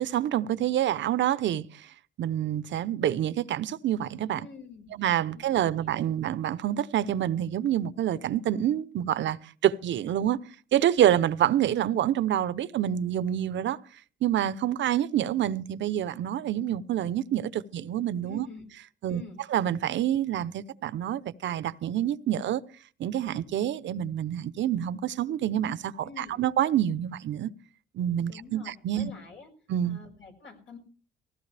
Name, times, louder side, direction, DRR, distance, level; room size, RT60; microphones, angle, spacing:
voice 1, 0.0-1.6 2.2-4.4 5.0-9.4 9.6-10.4 10.7-13.8 14.2-18.4 19.0-19.2 19.5-22.6 23.0-27.5 27.9-29.1 29.7-30.0, right 11 dB, 70° right, 0.8 m, -27 dB
voice 2, 4.4-5.0 5.3-6.2 18.2-18.7 19.1-19.4 26.0-26.4 28.3-29.5 29.8-30.8, left 5 dB, 75° left, 6.1 m, -47 dB
19.0 x 16.0 x 3.4 m
cardioid pair, 90°, 20 cm